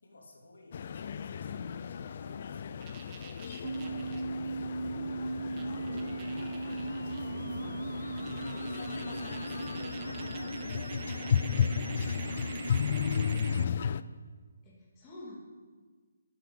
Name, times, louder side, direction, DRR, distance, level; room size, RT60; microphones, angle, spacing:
voice 1, 0.0-7.9 8.3-14.0, left 2 dB, 80° left, -1 dB, 3.3 m, -56 dB
sound 1, 0.7-14.0, left 7 dB, 45° left, 0.5 m, -34 dB
sound 2, 2.8-4.2 5.3-5.4 5.6-7.2 7.6-7.7 8.2-13.6, right 6 dB, 25° right, 1.3 m, -50 dB
sound 3, 3.6-13.6, right 3 dB, 85° right, 0.5 m, -38 dB
voice 2, 5.8-6.1 7.3-7.9 11.5-11.7 14.6-15.3, left 1 dB, 15° left, -5 dB, 2.9 m, -48 dB
11.5 x 8.1 x 8.9 m, 1.5 s
hypercardioid pair, 160°, 0 cm